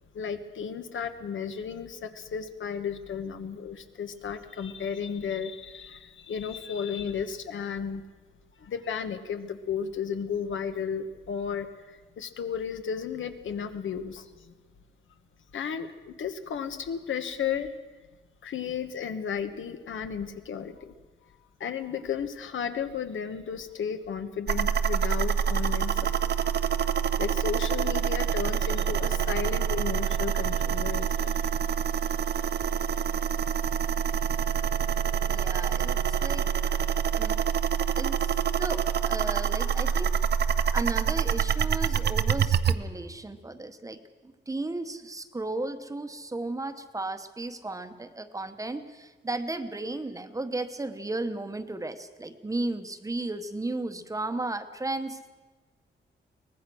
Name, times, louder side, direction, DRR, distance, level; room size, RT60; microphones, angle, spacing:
voice 1, 0.1-8.0 8.6-14.5 15.5-17.7 18.4-20.9 21.6-26.3 26.8-26.9 27.2-31.8, left 7 dB, 80° left, 8 dB, 1.4 m, -34 dB
sound 1, 24.5-42.8, right 7 dB, 55° right, 0.7 m, -26 dB
voice 2, 35.3-36.8 37.1-37.4 38.0-40.1 40.4-55.2, right 2 dB, 15° right, 9 dB, 1.0 m, -35 dB
23.5 x 19.0 x 6.2 m, 1.3 s
wide cardioid pair, 170°, 20 cm